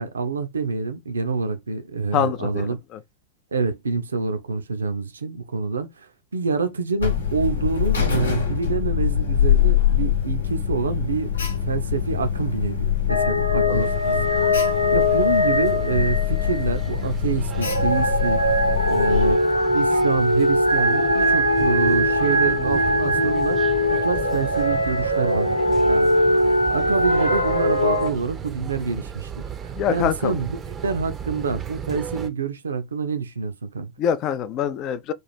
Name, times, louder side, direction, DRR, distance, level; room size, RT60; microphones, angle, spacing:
voice 1, 0.0-2.8 3.5-14.3 14.9-18.4 18.8-19.4 19.7-25.5 25.8-29.4 29.9-33.9, right 4 dB, 70° right, 0.6 m, -27 dB
voice 2, 2.1-3.0 13.6-13.9 29.8-30.4 34.0-35.1, left 9 dB, 35° left, 0.4 m, -25 dB
Alarm, 7.0-19.4, left 9 dB, 70° left, 0.9 m, -24 dB
sound 1, 13.1-16.8 17.5-28.1, left 1 dB, 90° left, 0.5 m, -21 dB
sound 2, 13.8-32.3, right 7 dB, 25° right, 0.5 m, -36 dB
3.2 x 2.5 x 4.2 m
figure-of-eight pair, 90°, 0 cm